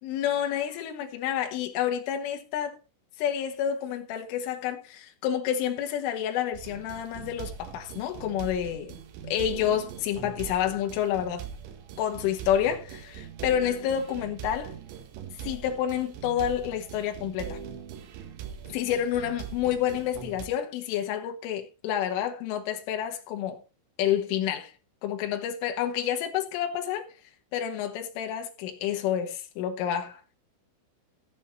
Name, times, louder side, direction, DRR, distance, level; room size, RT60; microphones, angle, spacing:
voice 1, 0.0-2.8 3.2-9.0 9.3-11.4 12.0-14.7 15.4-17.6 18.7-23.6 24.0-24.7 25.0-27.1 27.5-30.2, left 10 dB, 85° left, 3.9 m, -29 dB
sound 1, 6.5-20.5, right 8 dB, 75° right, 3.7 m, -41 dB
14.5 x 7.6 x 4.2 m
omnidirectional pair, 5.6 m